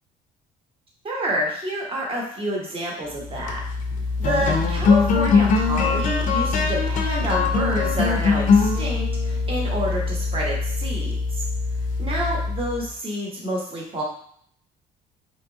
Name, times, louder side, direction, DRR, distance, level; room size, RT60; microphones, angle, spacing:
voice 1, 1.0-3.6 4.2-11.5 12.0-14.0, right 1 dB, 35° right, -2 dB, 0.9 m, -28 dB
sound 1, 3.3-12.9, left 4 dB, 50° left, 0.4 m, -22 dB
2.8 x 2.3 x 2.7 m, 0.63 s
cardioid pair, 110°, 17 cm